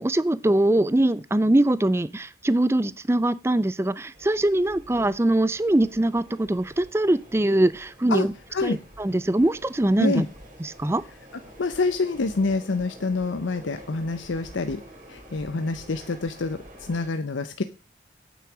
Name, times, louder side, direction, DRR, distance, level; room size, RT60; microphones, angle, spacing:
voice 1, 0.0-8.3 8.6-10.3 10.6-11.0, right 1 dB, 15° right, 17 dB, 0.4 m, -22 dB
sound 1, 4.1-17.1, equal, 45° right, 3.3 m, -48 dB
voice 2, 8.1-8.8 10.0-10.3 11.6-14.8 15.1-17.6, left 3 dB, 85° left, 10 dB, 0.7 m, -27 dB
8.8 x 7.0 x 6.1 m, 0.34 s
head